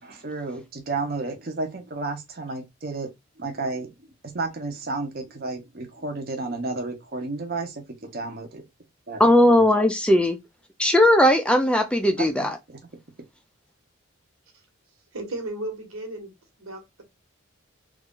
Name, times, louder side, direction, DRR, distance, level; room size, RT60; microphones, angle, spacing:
voice 1, 0.0-3.1 3.4-4.1 4.3-8.6 9.1-9.6 12.2-12.8, right 3 dB, 45° right, 0.8 m, -32 dB
voice 2, 9.2-10.4 10.8-12.5, left 1 dB, 5° left, 0.3 m, -18 dB
voice 3, 15.1-16.3 16.6-17.0, right 2 dB, 80° right, 1.3 m, -34 dB
3.1 x 2.4 x 3.6 m
head